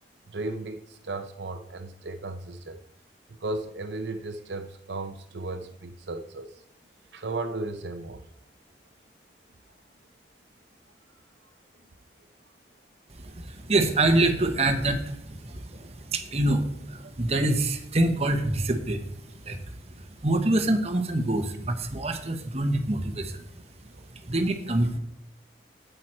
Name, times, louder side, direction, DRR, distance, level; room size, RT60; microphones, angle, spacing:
voice 1, 0.3-2.8 3.3-6.6 7.1-8.2 13.2-13.3 23.9-24.1, right 2 dB, 80° right, 8 dB, 0.7 m, -35 dB
voice 2, 13.1-25.0, right 2 dB, 35° right, 6 dB, 1.0 m, -26 dB
8.7 x 7.9 x 4.4 m, 0.76 s
head